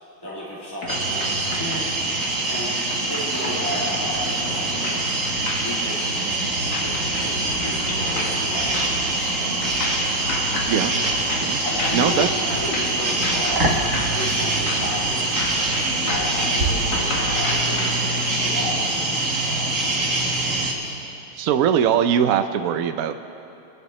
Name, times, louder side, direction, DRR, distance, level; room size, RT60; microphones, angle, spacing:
voice 1, 0.2-1.8 2.5-5.2 5.6-6.1 6.4-9.5 11.0-11.1 11.4-13.8 14.1-15.3 15.7-18.9 19.4-20.9, left 1 dB, 10° left, -7 dB, 3.2 m, -33 dB
sound 1, 0.8-17.9, left 2 dB, 50° left, 1.9 m, -33 dB
sound 2, 0.9-20.7, right 2 dB, 40° right, 1.6 m, -24 dB
voice 2, 11.9-12.3 21.4-23.1, right 9 dB, 80° right, 8 dB, 0.7 m, -21 dB
24.5 x 11.0 x 3.2 m, 2.9 s
omnidirectional pair, 2.3 m